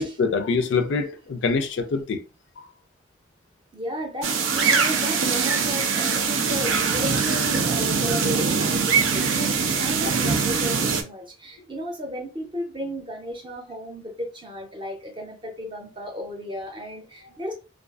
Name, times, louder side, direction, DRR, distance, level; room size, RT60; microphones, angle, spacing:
voice 1, 0.0-2.2, left 4 dB, 65° left, 0.4 m, -24 dB
voice 2, 3.7-17.5, equal, 25° right, 0.6 m, -34 dB
sound 1, 4.2-11.0, right 5 dB, 80° right, 0.4 m, -22 dB
2.5 x 2.5 x 2.3 m
head